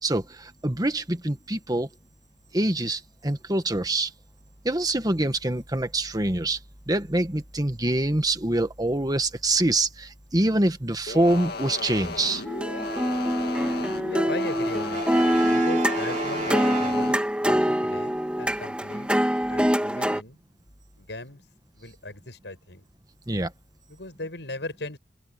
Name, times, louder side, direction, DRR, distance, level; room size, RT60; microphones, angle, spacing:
voice 1, 0.0-1.9 2.5-4.1 4.6-6.6 6.9-12.4 23.3-23.5, right 1 dB, 20° right, 1.5 m, -25 dB
sound 1, 11.1-17.2, left 3 dB, 65° left, 2.2 m, -35 dB
sound 2, 12.5-20.2, equal, 5° right, 3.1 m, -24 dB
voice 2, 14.1-15.0 15.5-19.1 19.5-20.4 21.0-21.4 21.7-22.8 23.9-25.0, left 2 dB, 85° left, 6.8 m, -38 dB
Brass instrument, 14.9-17.6, right 4 dB, 45° right, 3.8 m, -35 dB
open air
head